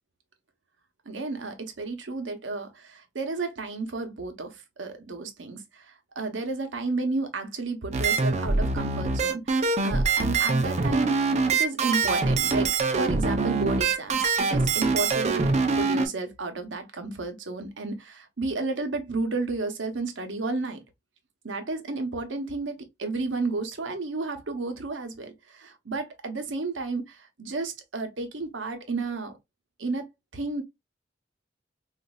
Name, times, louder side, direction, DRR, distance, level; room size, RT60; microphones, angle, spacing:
voice 1, 1.1-11.1 11.5-15.5 15.8-20.8 21.4-29.3 29.8-30.6, right 3 dB, 80° right, 0.8 m, -32 dB
sound 1, 7.9-16.1, right 4 dB, 40° right, 0.5 m, -24 dB
4.0 x 2.5 x 2.2 m
head